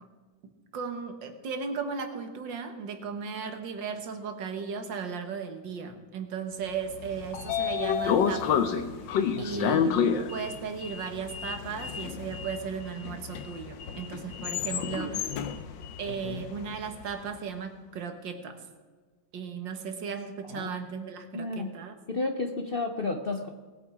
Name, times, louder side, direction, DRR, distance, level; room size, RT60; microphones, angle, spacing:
voice 1, 0.4-8.6 9.4-15.2 16.0-18.6 19.3-21.9, right 6 dB, 80° right, 6 dB, 2.0 m, -36 dB
Sliding door, 6.9-17.1, left 7 dB, 90° left, 1.6 m, -30 dB
voice 2, 9.3-9.9 14.9-15.4 16.1-16.4 20.5-20.7 21.3-21.7 22.1-23.5, left 3 dB, 50° left, 5 dB, 0.7 m, -33 dB
19.5 x 8.6 x 5.0 m, 1.4 s
omnidirectional pair, 2.0 m